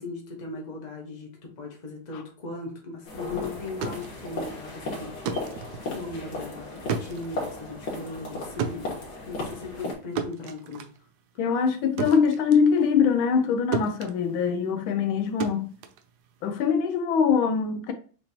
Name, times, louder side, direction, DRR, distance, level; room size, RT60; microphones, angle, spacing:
voice 1, 0.0-9.0 9.3-10.9, left 3 dB, 30° left, 0.9 m, -38 dB
sound 1, 3.0-9.9, left 2 dB, 55° left, 1.8 m, -36 dB
sound 2, 3.7-13.5 13.7-16.7, right 6 dB, 75° right, 0.9 m, -35 dB
voice 2, 11.4-15.7 16.4-17.9, left 6 dB, 80° left, 1.3 m, -23 dB
6.4 x 2.9 x 2.9 m
omnidirectional pair, 2.3 m